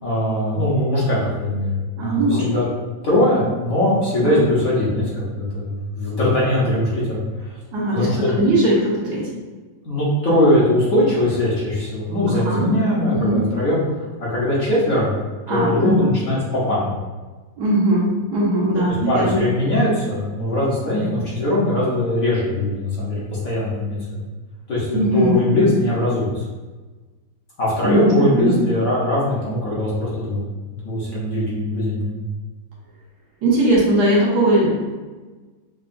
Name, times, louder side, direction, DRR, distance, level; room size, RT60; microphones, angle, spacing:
voice 1, 0.0-2.6 3.0-7.6 7.9-8.3 9.8-15.1 15.5-16.9 18.7-24.0 24.7-26.4 27.6-30.5 30.8-32.2, left 1 dB, 55° left, -8 dB, 1.2 m, -21 dB
voice 2, 2.0-2.4 4.2-4.4 7.7-9.3 12.3-12.7 13.1-13.4 15.5-16.0 17.6-19.4 24.9-25.4 27.8-28.5 33.4-34.8, right 1 dB, 65° right, -5 dB, 1.3 m, -19 dB
5.4 x 2.3 x 2.6 m, 1.3 s
omnidirectional pair, 2.1 m